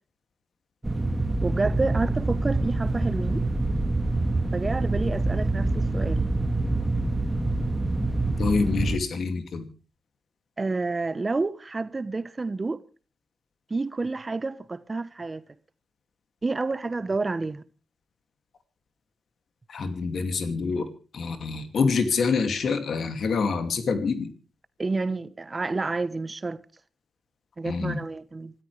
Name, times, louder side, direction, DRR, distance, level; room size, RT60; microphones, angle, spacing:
sound 1, 0.8-9.0, right 2 dB, 20° right, 2.3 m, -26 dB
voice 1, 1.4-3.4 4.5-6.3 10.6-12.8 13.7-15.4 16.4-17.6 24.8-26.6 27.6-28.5, right 3 dB, 40° right, 1.1 m, -29 dB
voice 2, 8.4-9.7 19.7-20.9 21.1-24.3 27.6-28.0, left 4 dB, 70° left, 2.5 m, -26 dB
26.5 x 13.5 x 3.4 m
supercardioid pair, 45°, 0 cm